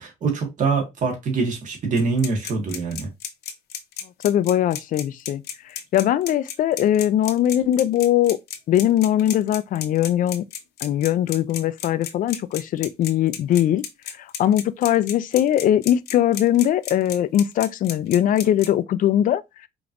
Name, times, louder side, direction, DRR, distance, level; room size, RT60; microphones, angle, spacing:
voice 1, 0.0-3.1, right 4 dB, 50° right, 1.5 m, -24 dB
sound 1, 2.0-18.7, left 9 dB, 75° left, 0.8 m, -33 dB
voice 2, 4.2-8.4 8.7-10.4 10.8-13.8 14.2-19.4, left 11 dB, 55° left, 0.4 m, -21 dB
5.0 x 2.9 x 2.5 m
cardioid pair, 110°, 17 cm